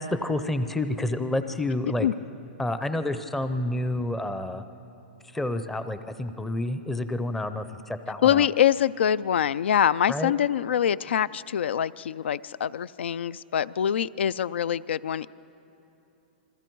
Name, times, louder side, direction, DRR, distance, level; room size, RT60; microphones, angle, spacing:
voice 1, 0.0-2.1 2.6-4.6 5.3-8.5 10.1-10.3, left 1 dB, 5° left, 10 dB, 0.5 m, -29 dB
voice 2, 8.2-15.3, left 9 dB, 90° left, 19 dB, 0.4 m, -24 dB
28.5 x 21.5 x 4.6 m, 3.0 s
hypercardioid pair, 170°, 6 cm